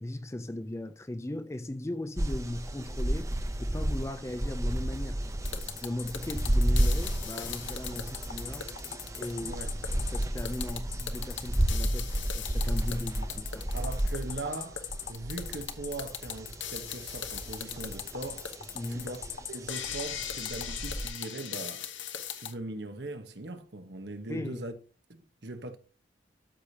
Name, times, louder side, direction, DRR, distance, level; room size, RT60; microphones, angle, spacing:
voice 1, 0.0-3.3 3.6-5.5 5.8-8.7 9.1-9.6 9.9-13.7 18.7-19.1 24.3-24.6, left 1 dB, 15° left, 0.4 m, -38 dB
Birds taking of, 2.2-21.1, right 1 dB, 15° right, 0.7 m, -32 dB
sound 1, 5.5-22.5, left 9 dB, 85° left, 1.0 m, -39 dB
voice 2, 9.4-9.7 13.7-18.5 18.9-19.2 19.5-21.9 22.3-24.7 25.1-25.8, right 2 dB, 60° right, 1.1 m, -40 dB
13.0 x 5.0 x 2.8 m
head